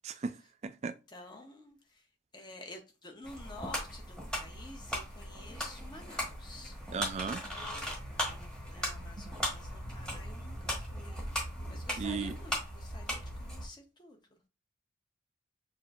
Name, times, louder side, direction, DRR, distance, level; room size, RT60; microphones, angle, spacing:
voice 1, 0.0-0.4 0.6-1.0 6.9-7.4 12.0-12.4, right 5 dB, 35° right, 0.3 m, -35 dB
voice 2, 1.1-2.1 2.3-6.8 8.1-11.3 11.7-14.4, left 2 dB, 25° left, 0.8 m, -50 dB
sound 1, 3.2-13.7, equal, 5° left, 1.1 m, -38 dB
6.6 x 2.6 x 2.4 m
head